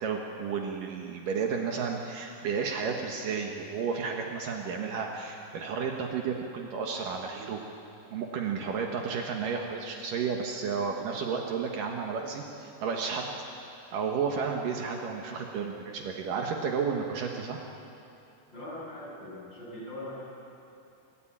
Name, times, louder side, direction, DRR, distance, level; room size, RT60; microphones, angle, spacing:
voice 1, 0.0-7.6 8.1-13.3 13.9-17.6, right 5 dB, 70° right, 1 dB, 2.9 m, -32 dB
voice 2, 18.5-20.2, left 1 dB, 30° left, -7 dB, 8.4 m, -41 dB
28.0 x 13.5 x 8.8 m, 2.8 s
omnidirectional pair, 4.2 m